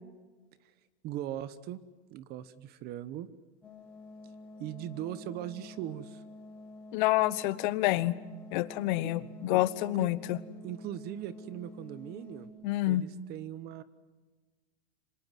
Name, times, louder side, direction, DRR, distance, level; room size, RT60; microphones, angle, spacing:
voice 1, 1.0-1.8 2.1-3.3 4.6-6.2 9.0-9.1 9.5-9.6 10.0-10.1 10.6-12.5 12.9-13.8, right 12 dB, 30° right, 16 dB, 1.1 m, -39 dB
sound 1, 3.6-12.5, left 1 dB, 5° left, 6.4 m, -49 dB
voice 2, 6.9-8.2 8.5-10.4 12.6-13.0, left 17 dB, 45° left, 17 dB, 1.1 m, -28 dB
26.0 x 18.5 x 9.3 m, 1.3 s
supercardioid pair, 155°, 32 cm